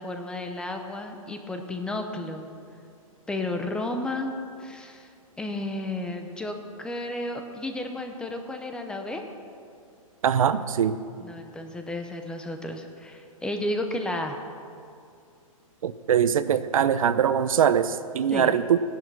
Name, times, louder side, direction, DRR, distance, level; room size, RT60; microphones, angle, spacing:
voice 1, 0.0-2.5 3.3-4.3 4.6-5.1 5.4-9.2 11.2-14.4 18.3-18.5, left 1 dB, 5° left, 5 dB, 0.7 m, -32 dB
voice 2, 10.2-11.0 15.8-18.8, right 8 dB, 70° right, 13 dB, 0.8 m, -22 dB
16.5 x 11.0 x 6.1 m, 2.4 s
hypercardioid pair, 160°, 18 cm